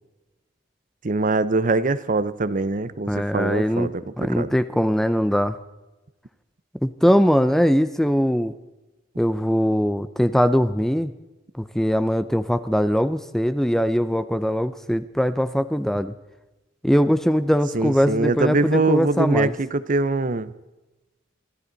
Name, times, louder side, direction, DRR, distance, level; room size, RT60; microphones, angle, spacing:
voice 1, 1.0-4.5 17.7-20.5, right 3 dB, 45° right, 15 dB, 0.7 m, -23 dB
voice 2, 3.1-3.9 4.2-5.6 6.8-8.5 9.2-11.1 11.6-16.1 16.8-19.5, equal, ahead, 13 dB, 0.6 m, -21 dB
26.5 x 13.0 x 4.0 m, 1.1 s
head